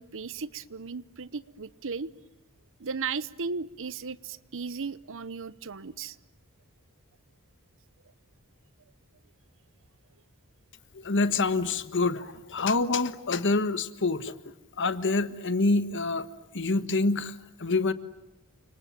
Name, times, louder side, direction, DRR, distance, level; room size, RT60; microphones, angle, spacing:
voice 1, 0.0-2.1 2.8-6.2, right 5 dB, 60° right, 17 dB, 0.9 m, -36 dB
voice 2, 10.9-14.3 14.8-16.3 16.5-17.3 17.6-17.9, left 3 dB, 55° left, 12 dB, 1.4 m, -26 dB
29.5 x 26.0 x 7.4 m, 0.93 s
head